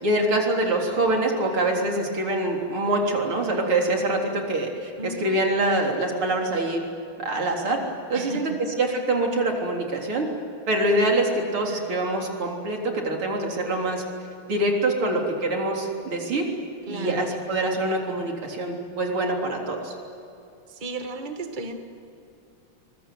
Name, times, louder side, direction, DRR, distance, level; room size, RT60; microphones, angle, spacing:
voice 1, 0.0-6.8 7.2-7.8 8.1-8.5 8.8-10.3 10.7-14.0 14.5-16.4 16.9-19.9, right 2 dB, 85° right, 1 dB, 4.5 m, -25 dB
voice 2, 5.0-5.4 8.1-8.6 16.9-17.3 20.7-21.8, right 2 dB, 25° right, 5 dB, 1.9 m, -34 dB
24.5 x 22.5 x 9.4 m, 2.7 s
omnidirectional pair, 2.3 m